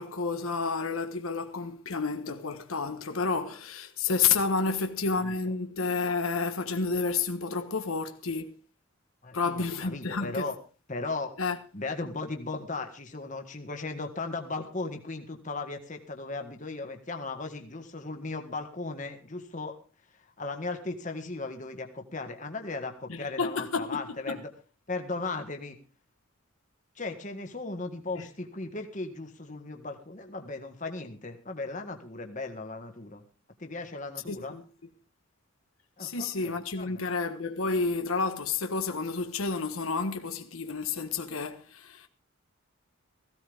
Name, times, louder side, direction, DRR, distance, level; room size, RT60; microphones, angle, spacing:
voice 1, 0.0-8.5 9.3-10.4 11.4-11.6 23.1-24.0 24.3-24.4 28.1-28.2 34.3-34.6 36.0-42.1, left 4 dB, 85° left, 1.3 m, -30 dB
voice 2, 9.2-10.6 10.9-11.3 11.7-19.8 20.2-24.5 24.9-25.8 27.0-33.2 33.6-34.6 36.0-37.0, left 3 dB, 35° left, 1.8 m, -37 dB
17.0 x 16.0 x 3.6 m
head